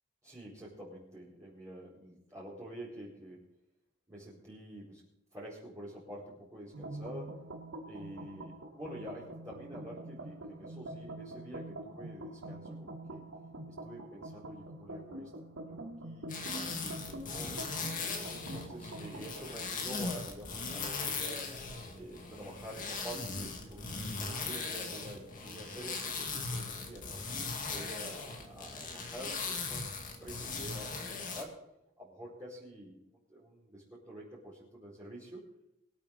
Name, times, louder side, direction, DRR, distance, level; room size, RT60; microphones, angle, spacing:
voice 1, 0.2-3.4 4.1-5.0 5.3-7.4 7.8-13.3 13.7-15.3 15.5-17.5 18.0-21.5 21.9-27.2 27.7-31.6 32.0-35.4, right 1 dB, 15° right, -11 dB, 4.7 m, -48 dB
sound 1, 6.7-19.5, right 1 dB, 85° right, 2.3 m, -45 dB
sound 2, 16.3-31.4, left 4 dB, 40° left, 2.2 m, -39 dB
24.0 x 8.7 x 4.1 m, 0.86 s
head